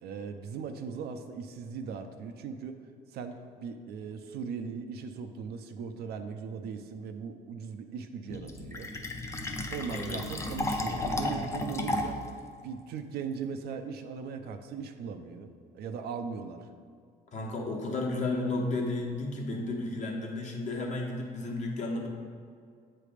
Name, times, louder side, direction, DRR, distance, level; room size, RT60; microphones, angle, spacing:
voice 1, 0.0-2.8 3.1-8.9 9.7-12.2 12.6-16.7, right 6 dB, 70° right, 7 dB, 0.6 m, -39 dB
Fill (with liquid), 8.3-12.3, left 2 dB, 15° left, 0.6 m, -33 dB
voice 2, 9.9-10.3 17.3-22.1, left 2 dB, 45° left, 0 dB, 1.1 m, -33 dB
7.6 x 3.3 x 4.9 m, 2.2 s
cardioid pair, 110°, 17 cm